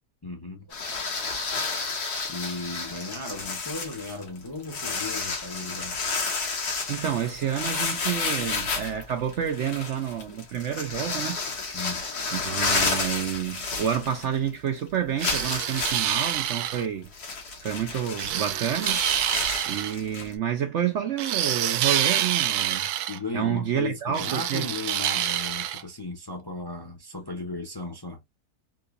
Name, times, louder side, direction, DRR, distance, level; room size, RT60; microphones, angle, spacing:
voice 1, 0.2-0.8 2.3-5.9 10.3-10.4 11.7-12.0 23.1-28.2, left 2 dB, 25° left, 0.6 m, -36 dB
sound 1, 0.7-14.5 14.8-14.9 15.2-20.3, left 4 dB, 85° left, 1.7 m, -31 dB
voice 2, 6.9-11.4 12.3-17.1 17.6-19.4 19.7-22.9 23.3-24.7, right 9 dB, 65° right, 0.8 m, -29 dB
sound 2, 15.2-16.9 18.2-20.0 21.2-23.2 24.1-25.8, right 11 dB, 85° right, 1.1 m, -27 dB
3.7 x 2.8 x 2.5 m
omnidirectional pair, 1.6 m